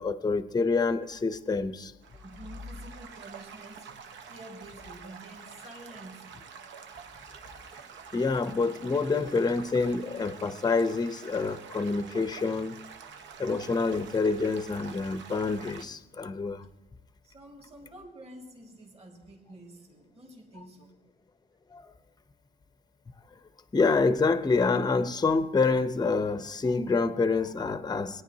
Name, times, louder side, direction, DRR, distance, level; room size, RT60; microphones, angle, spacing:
voice 1, 0.0-1.9 8.1-12.7 13.4-16.7 21.7-21.9 23.7-28.2, left 4 dB, 20° left, 0.6 m, -27 dB
Stream / Gurgling / Trickle dribble, 2.0-15.8, right 6 dB, 70° right, 0.7 m, -47 dB
voice 2, 2.1-3.9 4.2-6.3 17.2-20.9, right 1 dB, 30° right, 2.0 m, -48 dB
18.0 x 9.6 x 2.7 m
cardioid pair, 90°, 20 cm